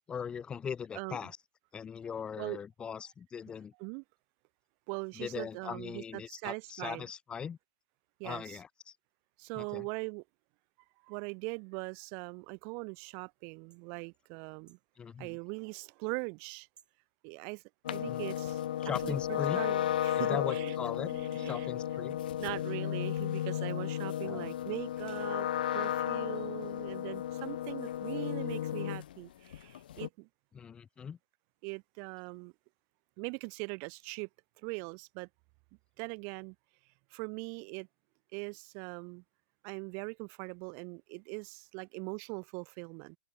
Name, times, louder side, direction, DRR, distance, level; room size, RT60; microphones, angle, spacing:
voice 1, 0.1-1.4 1.7-3.7 5.2-7.6 8.2-8.9 9.6-9.9 15.0-15.4 18.1-18.2 18.8-19.6 20.2-22.2 24.2-24.5 30.5-31.2, left 7 dB, 20° left, 2.0 m, -40 dB
voice 2, 4.9-7.1 8.2-8.6 9.4-10.2 11.0-14.8 15.2-16.7 17.2-17.6 17.9-18.6 19.0-20.8 21.1-21.7 22.4-25.5 25.7-30.3 31.6-32.5 33.2-34.3 34.6-35.3 36.0-36.5 37.1-37.9 38.3-39.2 39.6-43.2, right 38 dB, 40° right, 0.7 m, -41 dB
sound 1, 13.7-13.9 14.7-14.8 15.8-16.0 16.7-17.0 17.9-18.0 18.9-19.1 20.0-20.1, right 7 dB, 20° right, 2.7 m, -64 dB
sound 2, 17.8-29.2 29.5-30.1, left 11 dB, 65° left, 0.7 m, -34 dB
open air
hypercardioid pair, 120°, 5 cm